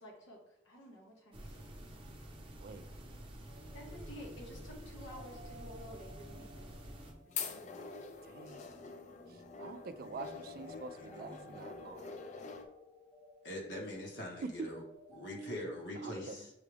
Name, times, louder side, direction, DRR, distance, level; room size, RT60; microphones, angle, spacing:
voice 1, 0.0-1.7 3.7-6.9 7.4-8.0, equal, 90° left, -2 dB, 1.4 m, -52 dB
sound 1, 1.3-7.1, right 1 dB, 30° right, 0.7 m, -49 dB
sound 2, 3.5-15.4, left 1 dB, 5° left, 0.8 m, -57 dB
sound 3, 6.8-12.7, left 5 dB, 40° left, 0.4 m, -45 dB
voice 2, 8.2-8.8 9.6-12.2 15.9-16.4, right 4 dB, 50° right, 10 dB, 0.3 m, -47 dB
voice 3, 10.0-11.6 13.4-14.8 15.1-16.5, left 1 dB, 65° left, -1 dB, 1.3 m, -44 dB
6.8 x 2.4 x 3.3 m, 0.84 s
head